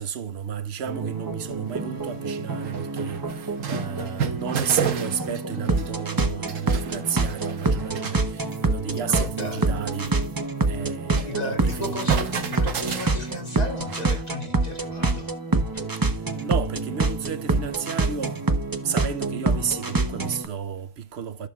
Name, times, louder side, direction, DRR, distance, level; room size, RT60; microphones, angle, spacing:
voice 1, 0.0-10.2 10.7-12.1 16.4-18.5 18.8-21.5, right 7 dB, 60° right, 0.9 m, -32 dB
sound 1, 0.8-20.5, right 3 dB, 20° right, 0.6 m, -27 dB
sound 2, 1.5-1.6 2.1-2.2 2.5-5.9 6.2-8.2 8.5-8.7 8.9-9.0 9.3-11.3 11.6-14.3, right 7 dB, 85° right, 1.4 m, -32 dB
voice 2, 9.1-9.7 11.1-15.3, left 1 dB, 30° left, 2.4 m, -35 dB
14.5 x 6.7 x 2.3 m
omnidirectional pair, 1.3 m